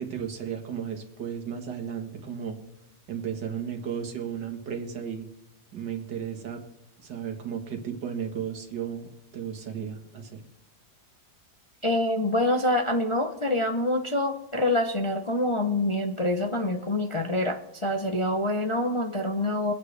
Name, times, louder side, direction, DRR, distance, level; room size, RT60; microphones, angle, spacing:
voice 1, 0.0-2.6 3.1-5.3 5.7-6.6 7.0-10.4, right 7 dB, 90° right, 3 dB, 2.2 m, -34 dB
voice 2, 11.8-19.7, left 1 dB, 50° left, 3 dB, 0.3 m, -26 dB
23.5 x 8.8 x 3.3 m, 0.91 s
omnidirectional pair, 1.8 m